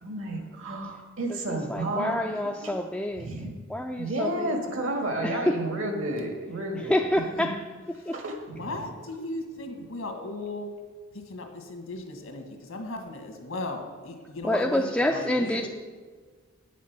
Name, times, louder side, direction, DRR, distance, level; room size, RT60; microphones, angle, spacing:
voice 1, 0.0-2.4 2.6-2.7 3.2-3.5 4.0-7.1 7.4-7.5 8.1-8.9, right 1 dB, 70° right, 3 dB, 1.7 m, -31 dB
voice 2, 1.3-3.3 3.7-4.6 5.2-5.5 6.8-7.6 8.1-8.2 14.4-15.7, left 1 dB, 5° left, 1 dB, 0.3 m, -27 dB
voice 3, 8.6-10.7 11.3-15.7, left 2 dB, 85° left, 3 dB, 1.7 m, -36 dB
9.4 x 7.4 x 5.9 m, 1.5 s
head